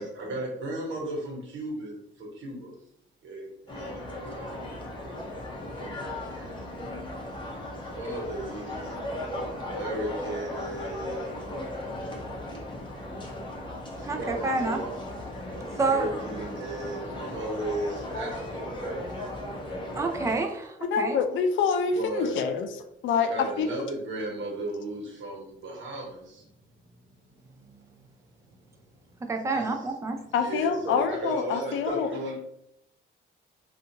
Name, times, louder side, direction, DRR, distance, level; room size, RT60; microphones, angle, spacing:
voice 1, 0.0-2.7 3.2-4.6 6.1-6.6 7.7-9.0 9.6-11.4 13.9-14.9 15.7-19.3 21.9-22.4 23.2-26.5 27.2-28.0 29.2-29.9 30.3-32.4, right 1 dB, 75° right, -1 dB, 1.0 m, -36 dB
sound 1, 3.7-20.4, left 1 dB, 25° left, 0.7 m, -36 dB
voice 2, 14.1-14.8 15.8-16.1 19.9-21.2 29.2-30.2, right 3 dB, 15° right, 4 dB, 0.4 m, -28 dB
voice 3, 20.8-22.7 23.0-23.3 23.6-23.7 30.3-32.1, left 6 dB, 75° left, 7 dB, 0.4 m, -26 dB
2.4 x 2.4 x 2.8 m, 0.78 s
cardioid pair, 90°, 20 cm